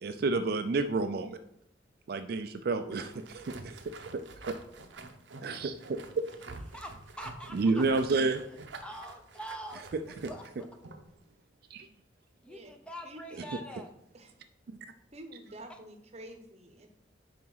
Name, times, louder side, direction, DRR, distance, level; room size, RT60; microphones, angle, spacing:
voice 1, 0.0-1.4 2.1-4.6 5.4-6.2 7.5-8.7 11.7-11.9 14.7-14.8, right 3 dB, 55° right, 8 dB, 0.4 m, -30 dB
sound 1, 2.9-11.1, right 3 dB, 85° right, 0.7 m, -48 dB
voice 2, 6.7-7.8 8.8-9.9 10.3-10.7 12.4-13.9 15.7-15.8, equal, 5° left, 4 dB, 0.6 m, -44 dB
voice 3, 13.0-13.5 14.1-14.3 15.1-16.9, right 1 dB, 40° right, 6 dB, 0.8 m, -48 dB
5.0 x 4.7 x 5.4 m, 0.75 s
head